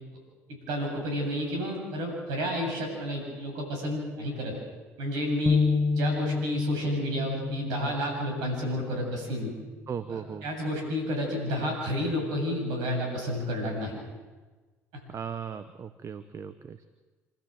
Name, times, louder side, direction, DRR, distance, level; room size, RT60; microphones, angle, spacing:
voice 1, 0.5-4.5 5.0-5.6 5.9-9.5 10.1-13.9, equal, 75° right, 2 dB, 7.8 m, -31 dB
sound 1, 5.5-9.0, left 4 dB, 30° left, 0.9 m, -29 dB
voice 2, 9.9-10.4 15.1-16.9, right 7 dB, 45° right, 12 dB, 1.1 m, -37 dB
27.5 x 13.5 x 7.6 m, 1.3 s
hypercardioid pair, 60°, 7 cm